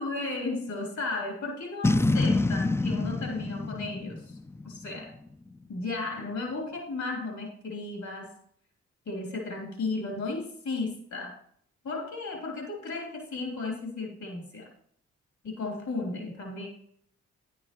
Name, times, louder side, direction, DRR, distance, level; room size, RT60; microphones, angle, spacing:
voice 1, 0.0-4.4 4.6-5.1 5.7-8.3 9.0-11.4 11.8-14.7 15.4-16.7, left 3 dB, 70° left, 0 dB, 3.2 m, -34 dB
Boom, 1.8-5.2, left 2 dB, 10° left, 0.4 m, -27 dB
10.5 x 8.7 x 3.0 m, 0.64 s
supercardioid pair, 45°, 30 cm